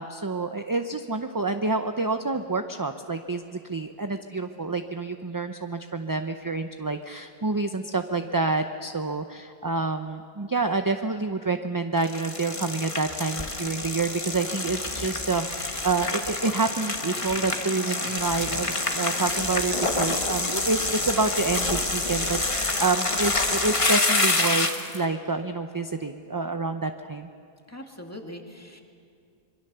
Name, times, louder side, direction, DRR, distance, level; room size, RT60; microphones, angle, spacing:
voice 1, 0.0-27.3, right 3 dB, 25° right, 7 dB, 0.6 m, -28 dB
sound 1, 12.0-25.0, left 2 dB, 30° left, 1.4 m, -27 dB
voice 2, 27.7-28.8, left 1 dB, 15° left, 2 dB, 2.1 m, -41 dB
25.5 x 23.5 x 6.9 m, 2.4 s
omnidirectional pair, 1.1 m